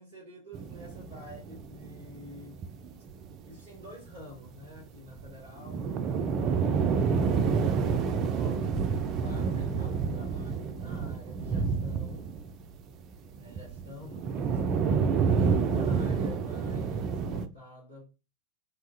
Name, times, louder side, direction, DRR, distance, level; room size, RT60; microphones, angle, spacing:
voice 1, 0.0-2.7 3.4-5.9 6.5-12.3 13.3-14.9 15.4-18.0, left 2 dB, 85° left, 1.7 m, -48 dB
sound 1, 0.5-3.5 3.9-4.0 4.2-4.3 4.5-4.6 5.1-12.8 13.1-17.5, right 5 dB, 35° right, 0.3 m, -29 dB
2.9 x 2.3 x 2.7 m
figure-of-eight pair, 90°, 0 cm